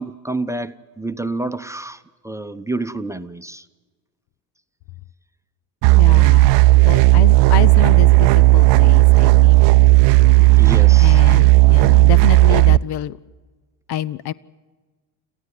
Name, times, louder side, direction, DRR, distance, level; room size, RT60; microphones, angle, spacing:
voice 1, 0.0-3.7 10.4-11.2, right 2 dB, 5° right, 9 dB, 0.8 m, -29 dB
sound 1, 5.8-12.8, right 20 dB, 60° right, 0.6 m, -12 dB
voice 2, 6.0-6.5 6.9-9.7 11.0-13.1 13.9-14.3, left 12 dB, 50° left, 19 dB, 0.7 m, -27 dB
27.0 x 15.0 x 9.6 m, 1.3 s
hypercardioid pair, 70°, 49 cm